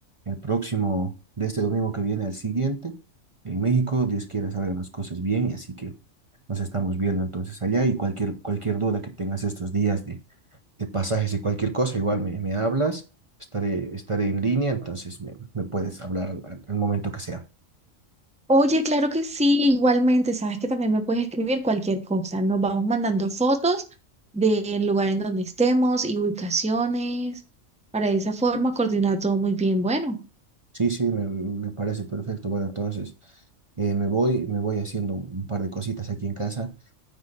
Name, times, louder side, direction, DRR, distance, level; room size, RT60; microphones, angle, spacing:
voice 1, 0.3-3.0 3.4-5.9 6.5-10.2 10.8-13.0 13.5-17.4 30.7-33.1 33.8-36.7, right 4 dB, 30° right, 0.7 m, -27 dB
voice 2, 18.5-23.8 24.3-27.4 27.9-30.2, right 2 dB, 5° right, 0.9 m, -23 dB
9.6 x 3.7 x 6.6 m
omnidirectional pair, 1.3 m